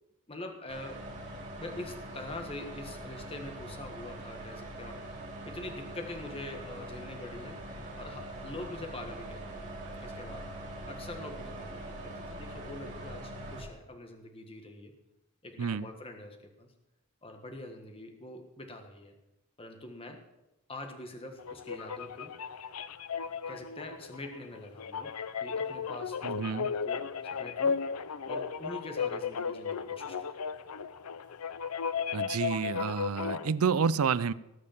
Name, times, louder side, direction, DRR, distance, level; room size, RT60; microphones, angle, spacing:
voice 1, 0.3-1.1 1.6-5.1 5.4-7.6 7.9-9.6 10.0-10.5 10.8-14.9 15.4-16.7 17.2-19.1 19.6-20.2 20.7-22.4 23.5-27.8 28.3-30.3, left 2 dB, 25° left, 4 dB, 1.5 m, -44 dB
sound 1, 0.7-13.6, right 1 dB, 35° right, 5.1 m, -43 dB
sound 2, 21.4-33.5, left 6 dB, 80° left, 0.6 m, -35 dB
voice 2, 26.2-26.7 32.1-34.3, right 6 dB, 75° right, 18 dB, 0.5 m, -29 dB
19.0 x 6.5 x 7.1 m, 0.92 s
head